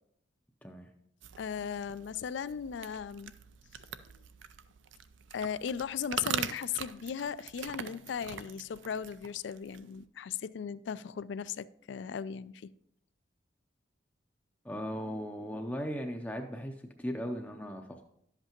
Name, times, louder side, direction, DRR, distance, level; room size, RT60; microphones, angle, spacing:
sound 1, 1.2-10.0, right 8 dB, 75° right, 0.5 m, -43 dB
voice 1, 1.4-3.3 3.8-3.9 4.1-4.2 5.3-12.7, left 7 dB, 70° left, 0.3 m, -37 dB
voice 2, 14.6-18.0, equal, 5° left, 0.5 m, -37 dB
11.5 x 7.9 x 2.9 m
head